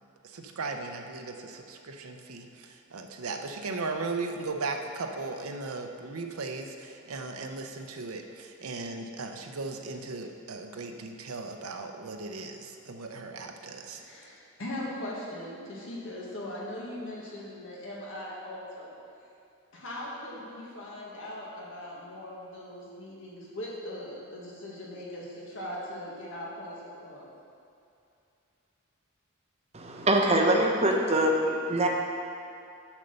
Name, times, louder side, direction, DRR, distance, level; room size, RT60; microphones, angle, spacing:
voice 1, 0.2-14.0, right 3 dB, 90° right, 4 dB, 0.7 m, -37 dB
voice 2, 13.9-18.9 19.7-27.3, left 1 dB, 65° left, -5 dB, 1.8 m, -40 dB
voice 3, 29.7-31.9, right 1 dB, 30° right, 1 dB, 0.8 m, -24 dB
7.3 x 6.6 x 5.3 m, 2.6 s
head